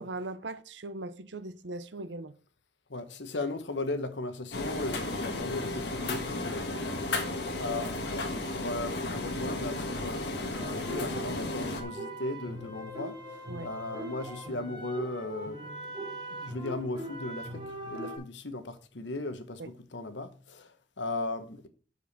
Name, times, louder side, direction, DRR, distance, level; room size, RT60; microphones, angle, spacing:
voice 1, 0.0-2.3 13.5-13.7 19.6-19.7, right 2 dB, 85° right, 0.8 m, -39 dB
voice 2, 2.9-15.6 16.3-21.7, left 2 dB, 85° left, 1.1 m, -37 dB
sound 1, 4.5-11.8, left 2 dB, 70° left, 1.6 m, -34 dB
sound 2, 10.6-18.2, right 1 dB, 25° right, 3.4 m, -41 dB
8.3 x 7.0 x 4.1 m
head